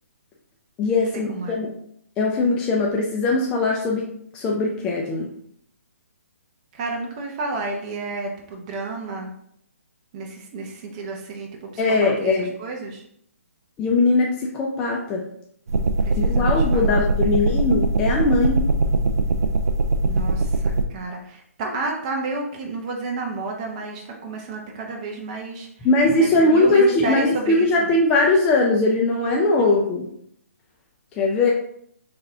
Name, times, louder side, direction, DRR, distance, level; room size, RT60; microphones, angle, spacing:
voice 1, 0.8-1.7 2.2-4.1 4.3-5.3 11.8-12.5 13.8-15.2 16.2-18.6 25.8-30.1 31.2-31.5, left 2 dB, 10° left, -1 dB, 0.3 m, -20 dB
voice 2, 1.3-1.6 6.7-9.3 10.1-13.0 16.0-17.0 17.4-17.7 20.0-25.7 26.2-27.9 29.6-29.7, right 3 dB, 30° right, 1 dB, 0.7 m, -31 dB
sound 1, 15.7-20.9, right 2 dB, 75° right, 0.4 m, -21 dB
3.4 x 3.3 x 3.7 m, 0.68 s
hypercardioid pair, 155°, 8 cm